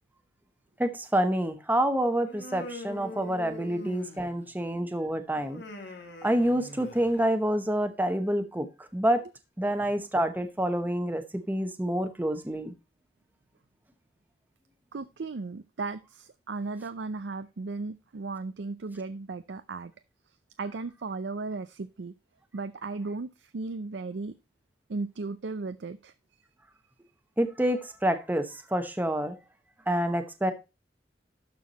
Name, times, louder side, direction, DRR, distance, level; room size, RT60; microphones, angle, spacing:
voice 1, 0.8-5.6 6.2-9.2 9.6-12.7 27.4-29.4 29.9-30.5, right 1 dB, 10° right, 7 dB, 0.9 m, -27 dB
Human voice, 2.3-4.5 5.4-7.3, left 1 dB, 75° left, 2.1 m, -43 dB
voice 2, 14.9-19.9 20.6-22.1 22.5-24.3 24.9-26.1, right 3 dB, 75° right, 11 dB, 0.5 m, -36 dB
12.0 x 4.7 x 4.1 m, 0.27 s
head